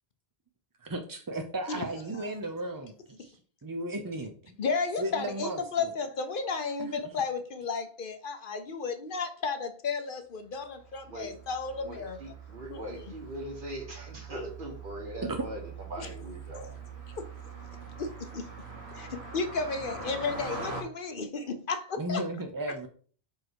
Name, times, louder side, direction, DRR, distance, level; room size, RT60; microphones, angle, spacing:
voice 1, 0.8-4.6 5.0-5.9 6.8-6.9 15.2-15.4 19.0-19.1 22.0-22.9, right 1 dB, 30° right, 0.4 m, -35 dB
voice 2, 4.6-12.2 12.7-12.8 16.0-16.1 16.5-16.7 17.2-17.3 18.0-18.5 18.9-22.2, left 4 dB, 60° left, 0.8 m, -33 dB
Car passing by, 10.7-20.8, right 4 dB, 85° right, 1.7 m, -43 dB
voice 3, 11.8-15.6 15.9-16.7, right 1 dB, 55° right, 1.7 m, -41 dB
4.8 x 4.4 x 4.6 m
omnidirectional pair, 1.1 m